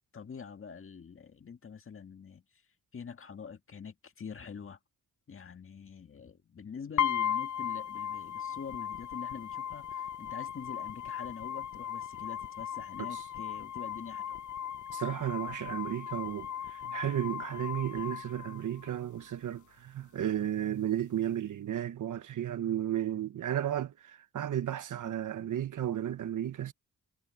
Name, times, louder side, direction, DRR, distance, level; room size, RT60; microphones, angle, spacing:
voice 1, 0.1-2.6 2.9-4.8 5.3-14.4, left 6 dB, 45° left, 1.9 m, -45 dB
sound 1, 7.0-19.0, left 9 dB, 70° left, 0.7 m, -37 dB
voice 2, 14.9-26.7, right 11 dB, 75° right, 1.2 m, -34 dB
wide cardioid pair, 115°, 31 cm